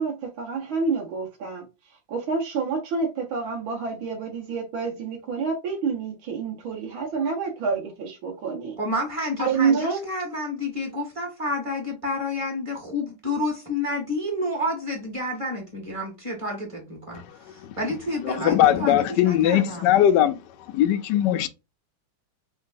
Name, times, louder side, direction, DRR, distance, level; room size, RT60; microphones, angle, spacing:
voice 1, 0.0-8.8 9.4-10.0, right 5 dB, 85° right, 1.8 m, -28 dB
voice 2, 8.8-19.9, left 1 dB, 15° right, 1.8 m, -30 dB
voice 3, 18.2-20.4 20.7-21.5, left 11 dB, 75° left, 1.1 m, -20 dB
4.5 x 3.7 x 2.5 m
omnidirectional pair, 2.1 m